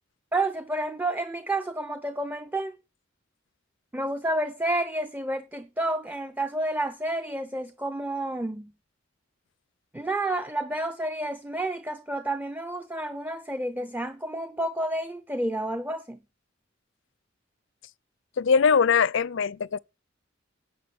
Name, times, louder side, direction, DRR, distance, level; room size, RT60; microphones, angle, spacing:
voice 1, 0.3-2.7 3.9-8.7 9.9-16.2, right 1 dB, 10° right, 0.6 m, -30 dB
voice 2, 18.4-19.8, left 6 dB, 65° left, 0.5 m, -21 dB
10.5 x 7.0 x 6.1 m
head